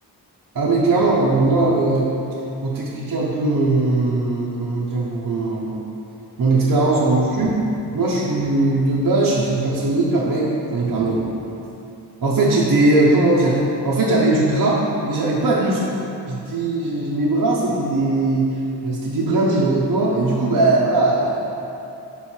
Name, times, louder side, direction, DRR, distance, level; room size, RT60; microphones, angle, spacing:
voice 1, 0.5-2.1 2.6-5.8 6.4-7.5 7.9-11.3 12.2-13.6 13.8-15.8 16.3-18.6 18.8-21.6, right 2 dB, 50° right, -5 dB, 0.8 m, -19 dB
5.7 x 3.8 x 4.5 m, 2.8 s
wide cardioid pair, 70°, 41 cm